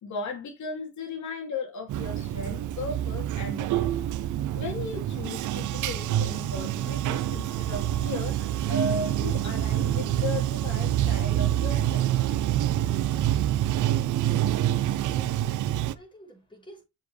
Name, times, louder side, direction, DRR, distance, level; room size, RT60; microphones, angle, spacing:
voice 1, 0.0-4.0 4.5-12.1, left 4 dB, 70° left, 2.9 m, -36 dB
Bathtub (filling or washing), 1.9-15.9, right 12 dB, 75° right, 0.8 m, -27 dB
voice 2, 14.7-16.8, right 1 dB, 15° left, 6.1 m, -51 dB
7.4 x 6.8 x 3.4 m
cardioid pair, 90°, 30 cm